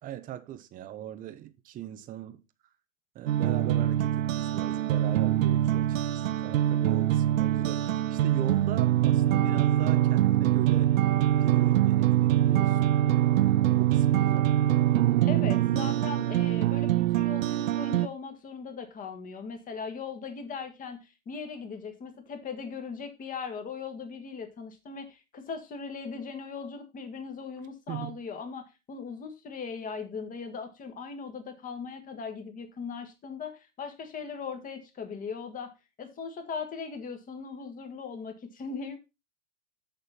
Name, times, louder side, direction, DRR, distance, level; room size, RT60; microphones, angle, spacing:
voice 1, 0.0-2.4 3.1-10.9 11.4-12.8 13.5-14.5 27.9-28.2, right 11 dB, 20° right, 0.7 m, -40 dB
sound 1, 3.3-18.1, right 13 dB, 65° right, 0.7 m, -24 dB
voice 2, 15.3-35.7 36.0-39.0, left 5 dB, 20° left, 1.6 m, -39 dB
6.8 x 6.8 x 4.1 m
hypercardioid pair, 120°, 43 cm